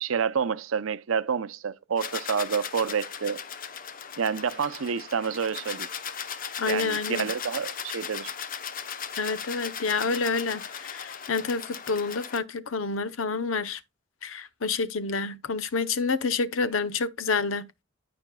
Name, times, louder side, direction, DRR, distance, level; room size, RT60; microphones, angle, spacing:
voice 1, 0.0-3.4 4.2-5.9 6.7-8.3, right 6 dB, 90° right, 0.6 m, -28 dB
sound 1, 2.0-12.4, left 7 dB, 45° left, 0.8 m, -37 dB
voice 2, 6.6-7.3 9.2-13.8 14.2-17.6, left 4 dB, 85° left, 0.7 m, -28 dB
13.5 x 5.1 x 2.2 m
head